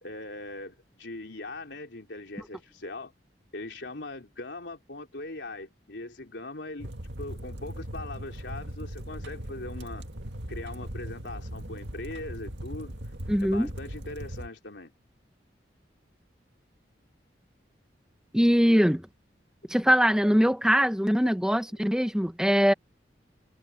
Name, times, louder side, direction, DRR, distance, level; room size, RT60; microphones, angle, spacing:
voice 1, 0.0-3.1 3.5-6.9 7.2-10.0 10.5-13.0 13.4-14.9, left 2 dB, 75° left, 3.6 m, -40 dB
sound 1, 6.8-14.5, right 1 dB, 75° right, 2.1 m, -39 dB
voice 2, 13.3-13.7 18.3-19.1 19.7-22.7, equal, 5° right, 1.1 m, -22 dB
head